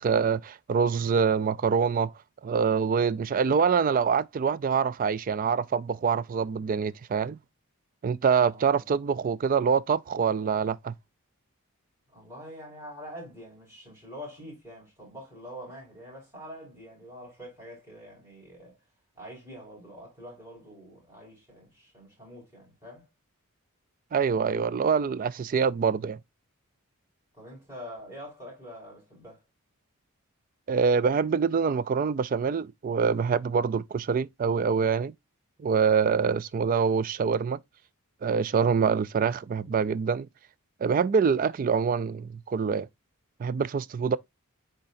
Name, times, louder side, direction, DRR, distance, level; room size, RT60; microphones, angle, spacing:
voice 1, 0.0-2.1 2.4-7.4 8.0-10.9 24.1-26.2 30.7-35.1 35.6-37.6 38.2-40.3 40.8-42.9 43.4-44.2, right 6 dB, 40° right, 0.3 m, -25 dB
voice 2, 8.4-8.8 12.1-18.8 19.1-23.1 27.3-29.4 44.1-44.2, equal, 10° right, 5.0 m, -45 dB
9.8 x 3.8 x 2.5 m
head